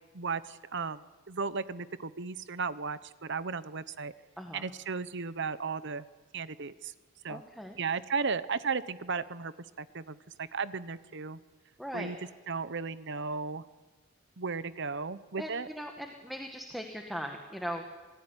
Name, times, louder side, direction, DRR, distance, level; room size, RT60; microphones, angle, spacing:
voice 1, 0.1-4.1 4.5-6.0 6.3-6.9 7.2-7.4 7.8-11.4 11.9-12.2 12.5-13.6 14.4-15.7, right 5 dB, 60° right, 15 dB, 1.0 m, -35 dB
voice 2, 7.3-7.8 11.8-12.1 15.4-17.9, equal, ahead, 3 dB, 1.8 m, -39 dB
26.5 x 19.5 x 9.9 m, 1.3 s
head